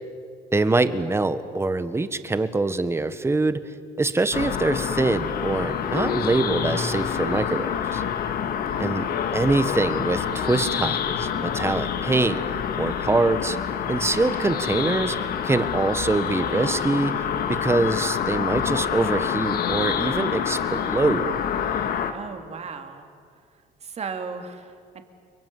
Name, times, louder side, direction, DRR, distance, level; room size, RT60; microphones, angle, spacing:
voice 1, 0.5-3.6 4.0-8.0 8.8-9.0 9.3-12.4 12.8-13.6 13.9-15.2 15.4-17.1 17.5-21.3, right 3 dB, 15° right, 12 dB, 1.4 m, -24 dB
sound 1, 4.3-22.1, left 8 dB, 65° left, 1.9 m, -27 dB
voice 2, 8.7-9.2 22.1-23.0 23.8-25.0, right 5 dB, 40° right, 6 dB, 2.7 m, -36 dB
29.5 x 23.0 x 7.8 m, 2.1 s
cardioid pair, 110°, 17 cm